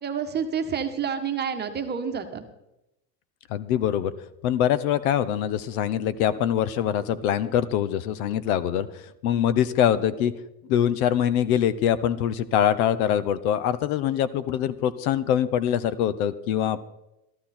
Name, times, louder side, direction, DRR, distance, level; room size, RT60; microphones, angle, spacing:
voice 1, 0.0-2.4, right 7 dB, 20° right, 6 dB, 1.3 m, -29 dB
voice 2, 3.5-4.1 4.4-10.3 10.7-16.8, left 10 dB, 60° left, 16 dB, 1.0 m, -24 dB
14.0 x 13.5 x 4.3 m, 0.88 s
supercardioid pair, 140°, 49 cm